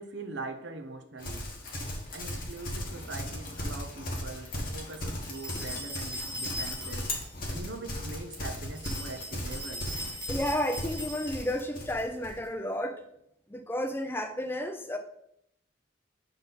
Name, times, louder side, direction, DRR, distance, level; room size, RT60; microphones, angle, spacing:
voice 1, 0.0-1.4 2.1-7.1 7.5-9.9, right 3 dB, 70° right, 7 dB, 0.7 m, -42 dB
Livestock farm animals working animals, 1.2-12.4, left 1 dB, 45° left, 1.3 m, -37 dB
sound 1, 5.3-7.3 8.7-11.6, equal, 20° right, 1.3 m, -40 dB
voice 2, 10.3-13.0 13.5-15.0, left 1 dB, 10° left, 7 dB, 0.5 m, -32 dB
6.7 x 4.1 x 4.0 m, 0.75 s
head